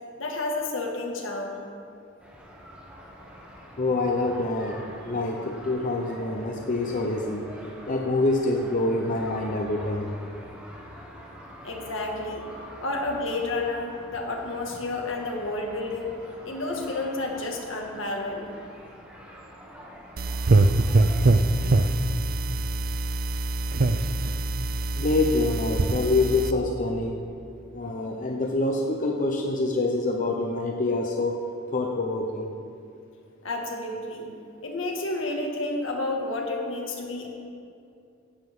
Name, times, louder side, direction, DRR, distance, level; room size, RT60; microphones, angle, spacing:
voice 1, 0.2-1.6 11.6-12.4 12.8-16.2 16.4-18.5 33.4-34.3 34.6-37.3, left 2 dB, 70° left, 1 dB, 1.9 m, -30 dB
sound 1, 2.2-21.3, equal, 5° right, 2.2 m, -46 dB
voice 2, 3.8-7.5 7.9-10.1 25.0-27.2 27.7-31.4 31.7-32.5, left 2 dB, 40° left, 1 dB, 0.8 m, -26 dB
sound 2, 20.2-26.5, right 2 dB, 50° right, 0.5 m, -23 dB
16.5 x 12.0 x 3.7 m, 2.5 s
head